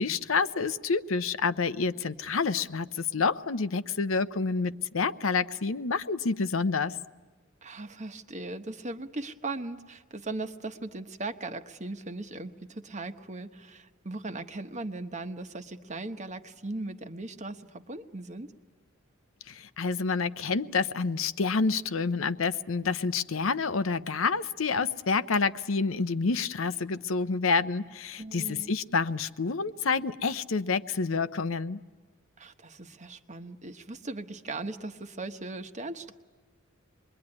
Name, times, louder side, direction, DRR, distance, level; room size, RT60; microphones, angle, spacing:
voice 1, 0.0-7.0 19.5-31.8, left 4 dB, 75° left, 13 dB, 0.7 m, -28 dB
voice 2, 7.6-18.5 28.2-28.7 32.4-36.1, right 2 dB, 35° right, 8 dB, 1.1 m, -38 dB
27.0 x 22.0 x 9.8 m, 1.4 s
head